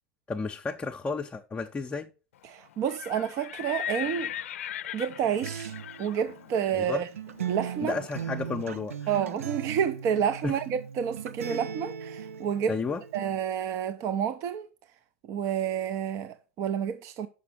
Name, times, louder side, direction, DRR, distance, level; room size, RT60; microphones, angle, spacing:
voice 1, 0.3-2.1 6.7-7.1 7.8-9.1 10.4-10.6 11.5-11.6 12.7-13.0, left 4 dB, 15° left, 0.6 m, -32 dB
voice 2, 2.4-4.3 4.9-7.1 7.5-8.0 9.1-12.7 13.1-14.7 15.3-17.3, right 8 dB, 45° right, 0.6 m, -29 dB
Livestock farm animals working animals, 2.7-8.6, left 10 dB, 80° left, 0.4 m, -39 dB
Acoustic guitar, 5.4-13.4, right 8 dB, 90° right, 0.5 m, -38 dB
5.9 x 5.7 x 5.9 m
hypercardioid pair, 105°, 7 cm